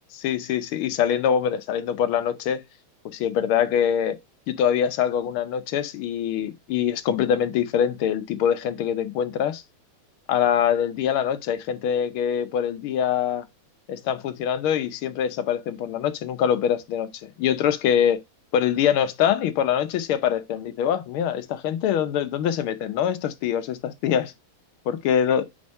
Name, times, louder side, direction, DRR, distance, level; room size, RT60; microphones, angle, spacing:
voice 1, 0.1-2.6 3.1-4.2 4.5-9.6 10.3-13.5 13.9-18.2 18.5-24.3 24.9-25.4, left 9 dB, 75° left, 1.6 m, -24 dB
5.0 x 4.3 x 5.3 m
omnidirectional pair, 2.4 m